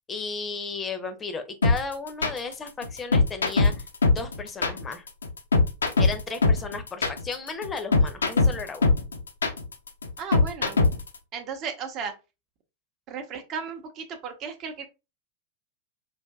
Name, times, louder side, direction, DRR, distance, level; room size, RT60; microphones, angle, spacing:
voice 1, 0.1-5.0 6.0-8.9, left 4 dB, 20° left, 8 dB, 0.7 m, -35 dB
sound 1, 1.6-11.2, left 3 dB, 70° left, 0.6 m, -21 dB
voice 2, 10.2-10.8 11.3-12.1 13.1-14.9, right 6 dB, 35° right, 6 dB, 0.8 m, -35 dB
5.0 x 2.5 x 2.3 m, 0.28 s
figure-of-eight pair, 90°, 0 cm